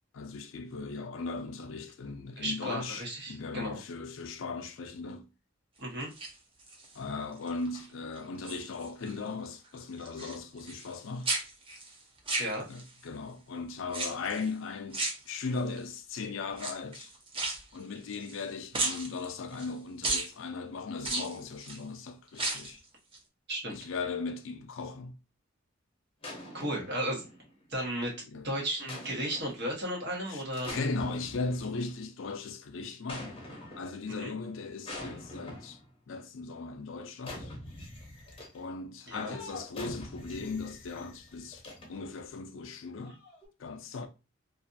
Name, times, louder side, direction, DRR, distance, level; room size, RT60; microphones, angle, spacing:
voice 1, 0.1-5.3 6.9-11.4 12.7-17.1 17.7-22.8 23.7-25.2 28.3-28.5 30.3-30.4 30.7-33.4 33.8-35.8 36.1-37.5 38.5-41.6 41.9-43.2 43.6-44.1, left 4 dB, 70° left, 0.4 m, -38 dB
voice 2, 2.4-3.8 5.8-6.1 12.4-12.6 23.5-23.8 26.5-27.2 27.7-28.1 28.4-30.7 34.1-34.3 39.1-39.4, right 1 dB, 55° right, 1.0 m, -34 dB
sound 1, 6.0-7.0 7.5-7.9 8.2-9.2 9.4-11.0 11.2-13.0 13.9-14.5 14.9-15.8 16.5-18.4 18.7-19.7 20.0-20.3 21.0-21.8 22.3-22.8 23.1-23.2, right 2 dB, 25° right, 0.6 m, -35 dB
sound 2, 26.2-27.7 28.9-29.7 30.5-31.9 33.1-34.1 34.9-35.9 37.2-38.7 39.3-42.2 43.0-43.5, left 1 dB, 25° left, 0.6 m, -45 dB
2.5 x 2.3 x 2.5 m
head